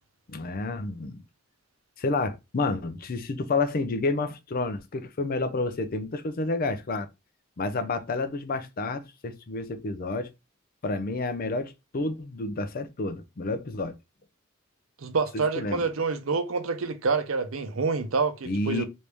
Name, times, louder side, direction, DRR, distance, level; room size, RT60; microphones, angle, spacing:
voice 1, 0.3-1.2 2.0-7.1 7.6-10.3 10.8-13.9 15.3-15.8 18.4-18.8, left 3 dB, 45° left, 0.5 m, -30 dB
voice 2, 15.0-18.8, right 4 dB, 80° right, 0.6 m, -27 dB
3.1 x 2.6 x 3.4 m
head